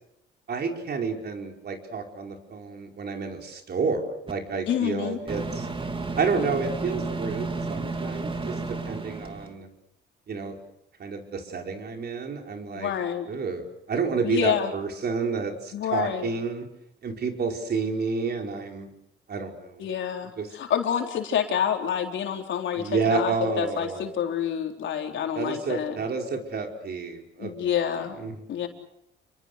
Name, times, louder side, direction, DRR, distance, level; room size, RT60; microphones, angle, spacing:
voice 1, 0.5-5.7 6.2-9.7 10.3-10.6 11.0-12.9 13.3-16.7 17.0-18.9 19.3-19.9 20.4-20.5 22.8-24.0 25.3-27.7 28.2-28.3, right 4 dB, 55° right, 3 dB, 5.0 m, -30 dB
Microwave oven, 4.3-4.4 5.3-9.5, right 3 dB, 25° right, 2.9 m, -32 dB
voice 2, 4.7-5.2 12.7-13.3 14.2-14.7 15.7-16.3 19.8-26.0 27.4-28.2 28.5-28.7, left 9 dB, 70° left, 3 dB, 4.1 m, -28 dB
29.5 x 23.5 x 6.8 m, 0.77 s
cardioid pair, 90°, 20 cm